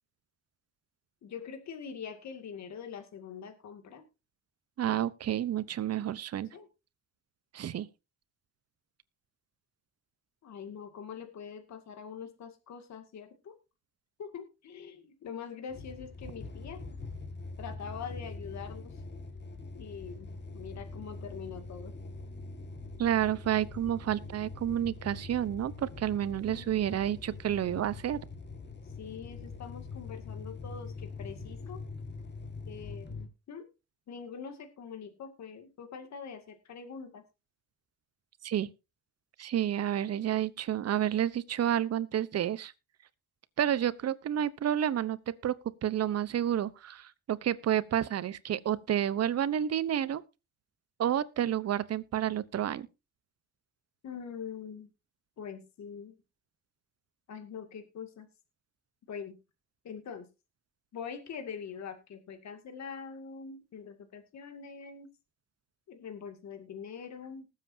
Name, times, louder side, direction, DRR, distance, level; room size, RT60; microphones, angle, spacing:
voice 1, 1.2-4.1 6.5-6.7 10.4-13.5 14.2-16.8 17.6-19.0 19.7-21.9 26.5-26.7 29.0-31.8 32.7-33.7 34.1-37.2 54.0-54.9 55.4-56.2 57.3-58.3 59.1-59.4 59.8-60.3 60.9-65.1 65.9-67.5, left 6 dB, 65° left, 2.3 m, -44 dB
voice 2, 4.8-6.5 7.5-7.9 23.0-28.2 38.4-38.7 39.4-42.7 43.6-45.2 45.4-45.5 45.8-50.2 51.0-52.9, right 10 dB, 55° right, 0.9 m, -30 dB
sound 1, 15.7-33.3, left 3 dB, 35° left, 2.0 m, -43 dB
20.0 x 7.6 x 2.7 m
cardioid pair, 90°, 30 cm